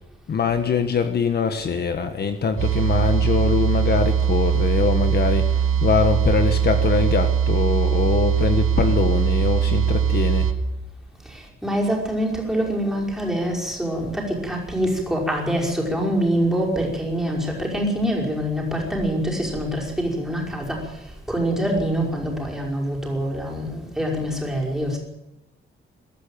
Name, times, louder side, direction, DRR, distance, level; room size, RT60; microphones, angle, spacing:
voice 1, 0.3-10.5, left 5 dB, 50° left, 7 dB, 1.5 m, -23 dB
sound 1, 2.6-10.5, right 8 dB, 85° right, 2.1 m, -21 dB
voice 2, 11.3-20.9 21.3-25.0, equal, ahead, -2 dB, 5.5 m, -25 dB
22.0 x 13.5 x 8.9 m, 0.90 s
wide cardioid pair, 180°, 21 cm